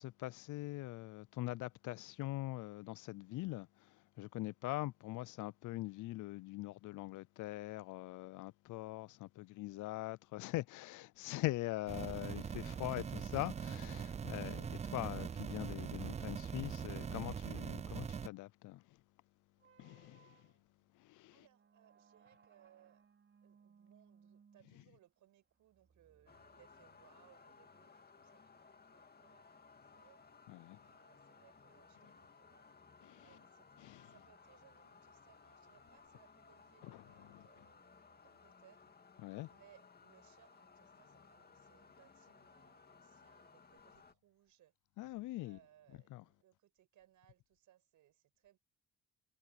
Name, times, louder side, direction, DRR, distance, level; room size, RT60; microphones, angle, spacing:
voice 1, 0.0-18.8 19.8-20.5 20.9-21.3 30.5-30.8 33.0-33.2 33.8-34.1 36.8-37.5 39.2-39.5 45.0-45.6 46.1-46.2, left 18 dB, 80° left, 0.5 m, -43 dB
sound 1, 11.9-18.3, right 7 dB, 25° right, 0.3 m, -42 dB
sound 2, 19.6-27.4, right 6 dB, 40° right, 4.7 m, -68 dB
voice 2, 21.3-23.1 23.4-30.2 30.8-32.7 33.2-33.7 34.0-38.9 39.5-44.7 45.4-48.6, right 12 dB, 80° right, 6.6 m, -69 dB
sound 3, 26.3-44.1, left 5 dB, 30° left, 2.3 m, -62 dB
cardioid pair, 90°, 30 cm